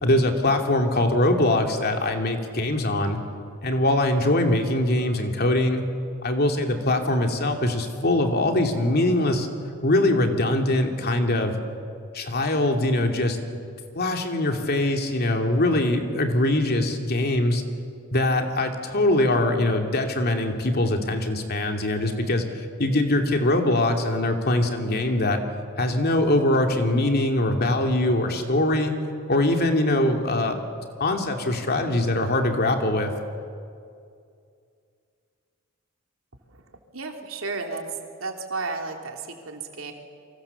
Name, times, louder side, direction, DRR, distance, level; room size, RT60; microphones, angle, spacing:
voice 1, 0.0-3.2 3.6-5.8 6.2-9.5 9.8-11.6 12.1-13.4 13.9-17.6 18.1-25.4 25.8-28.9 29.3-30.6 31.0-33.1, left 1 dB, 50° left, 4 dB, 2.7 m, -22 dB
voice 2, 36.9-37.8 38.2-39.9, right 3 dB, 80° right, 3 dB, 3.2 m, -33 dB
29.0 x 24.5 x 7.1 m, 2.3 s
head